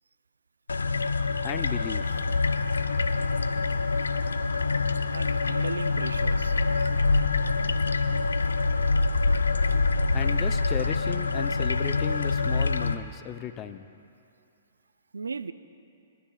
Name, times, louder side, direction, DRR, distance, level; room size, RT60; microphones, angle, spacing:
sound 1, 0.7-12.9, left 3 dB, 90° left, 0.5 m, -25 dB
voice 1, 1.4-2.1 10.1-13.9, left 10 dB, 30° left, 10 dB, 0.6 m, -35 dB
voice 2, 5.1-6.9 15.1-15.5, right 4 dB, 85° right, 13 dB, 0.4 m, -36 dB
23.0 x 12.0 x 2.4 m, 2.6 s
hypercardioid pair, 125°, 0 cm